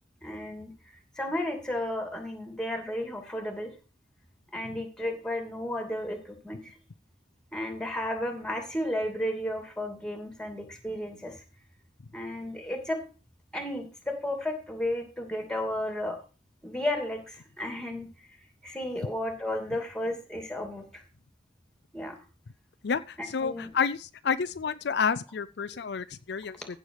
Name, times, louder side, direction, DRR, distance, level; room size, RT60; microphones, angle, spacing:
voice 1, 0.2-0.7 1.2-3.7 4.5-6.8 7.5-11.4 12.1-13.0 13.5-16.2 16.6-18.3 18.6-21.0 21.9-22.2 23.4-23.7 26.6-26.7, left 1 dB, 5° left, 4 dB, 2.6 m, -33 dB
voice 2, 22.8-26.6, left 6 dB, 60° left, 13 dB, 0.5 m, -30 dB
15.5 x 6.8 x 4.8 m, 0.35 s
head